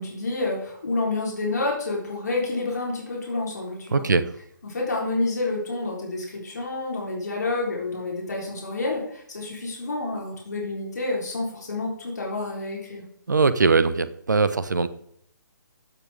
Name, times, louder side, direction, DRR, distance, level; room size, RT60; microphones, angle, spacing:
voice 1, 0.0-4.1 4.6-13.0, left 2 dB, 55° left, -2 dB, 4.0 m, -29 dB
voice 2, 3.9-4.3 13.3-14.9, right 4 dB, 60° right, 14 dB, 1.0 m, -21 dB
14.5 x 7.5 x 3.7 m, 0.69 s
figure-of-eight pair, 140°, 11 cm